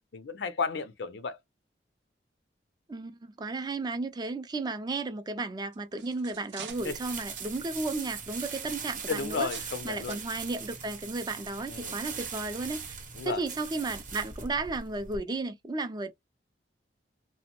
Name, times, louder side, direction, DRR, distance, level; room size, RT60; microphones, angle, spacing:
voice 1, 0.1-1.4 6.8-7.0 9.1-10.2 11.7-12.0 13.1-13.4, left 5 dB, 75° left, 0.5 m, -33 dB
voice 2, 2.9-9.5 9.8-13.0 13.2-16.1, right 3 dB, 25° right, 0.4 m, -34 dB
sound 1, 5.6-9.8 10.1-10.3 11.0-11.1 11.6-11.7, right 8 dB, 85° right, 0.6 m, -47 dB
sound 2, 6.7-15.2, right 6 dB, 45° right, 0.7 m, -40 dB
2.8 x 2.0 x 2.9 m
head